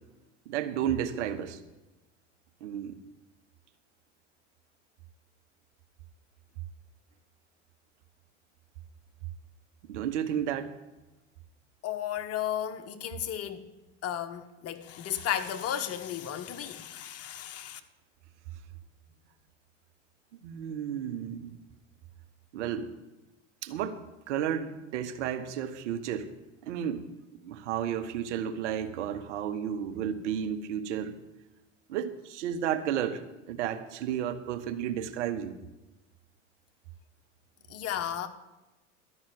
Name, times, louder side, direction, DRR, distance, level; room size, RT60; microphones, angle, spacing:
voice 1, 0.5-1.6 2.6-3.0 9.9-10.7 20.4-21.5 22.5-22.9 23.6-26.3 26.6-27.1 27.4-31.2 31.9-35.5, right 9 dB, 70° right, 1.2 m, -32 dB
voice 2, 11.8-13.7 14.0-17.8 37.7-38.3, left 10 dB, 40° left, 1.2 m, -34 dB
12.0 x 6.1 x 9.3 m
hypercardioid pair, 85°, 36 cm